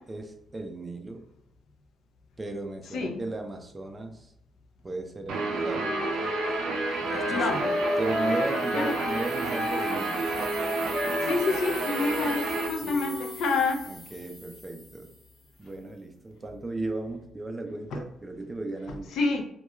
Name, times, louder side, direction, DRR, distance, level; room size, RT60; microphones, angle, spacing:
voice 1, 0.1-1.2 2.4-4.3 4.8-6.0 7.0-10.3 12.8-13.2 13.9-15.1 15.6-19.2, right 2 dB, 25° right, 5 dB, 0.4 m, -36 dB
Guitar, 5.3-12.7, right 3 dB, 85° right, 0.4 m, -30 dB
Wind instrument woodwind instrument, 5.7-9.3 9.5-13.4, left 2 dB, 30° left, 0.6 m, -33 dB
voice 2, 7.3-7.6 8.7-8.9 11.2-13.8 19.2-19.4, left 3 dB, 75° left, 4 dB, 0.4 m, -27 dB
Ringing Saws, 7.7-15.6, left 2 dB, 50° left, 1.0 m, -44 dB
2.2 x 2.2 x 3.0 m, 0.77 s
cardioid pair, 90°, 0 cm